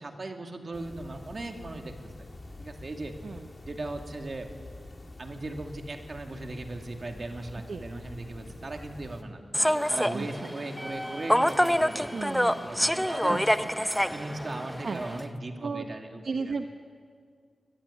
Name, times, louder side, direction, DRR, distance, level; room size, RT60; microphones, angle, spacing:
voice 1, 0.0-2.1 2.6-3.2 3.7-4.5 5.2-9.4 9.9-12.1 12.6-13.4 14.1-16.6, right 2 dB, 40° right, 3 dB, 2.5 m, -38 dB
sound 1, 0.7-9.2, left 2 dB, 30° left, 2.4 m, -46 dB
Human voice / Subway metro underground, 9.5-15.2, equal, 5° left, 0.7 m, -27 dB
voice 2, 10.1-10.5 12.1-12.7 13.3-13.7 14.8-15.0 15.6-15.8 16.2-16.7, right 4 dB, 60° right, 6 dB, 1.0 m, -34 dB
23.0 x 21.0 x 9.9 m, 2.1 s
wide cardioid pair, 150°, 0 cm